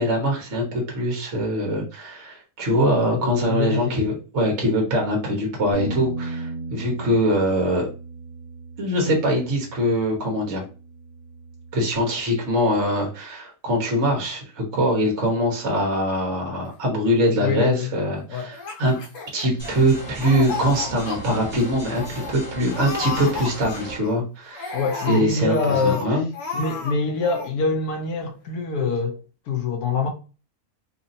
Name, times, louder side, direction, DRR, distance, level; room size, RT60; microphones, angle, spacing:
voice 1, 0.0-7.9 8.8-10.6 11.7-19.0 19.3-24.8 25.1-26.3, equal, 50° right, 1.5 m, -23 dB
voice 2, 3.1-4.0 17.4-17.9 18.3-18.5 24.7-26.2 26.5-29.2 29.5-30.1, left 4 dB, 80° left, 1.4 m, -25 dB
Bass guitar, 5.7-12.0, right 2 dB, 70° right, 1.3 m, -36 dB
Laughter, 18.5-19.9 20.2-21.2 21.6-21.7 21.9-22.3 22.7-24.1 24.5-26.0 26.3-26.9 27.2-27.5, left 4 dB, 60° left, 1.2 m, -32 dB
sound 1, 19.6-24.0, equal, 15° left, 1.5 m, -37 dB
4.1 x 2.7 x 2.6 m
omnidirectional pair, 1.6 m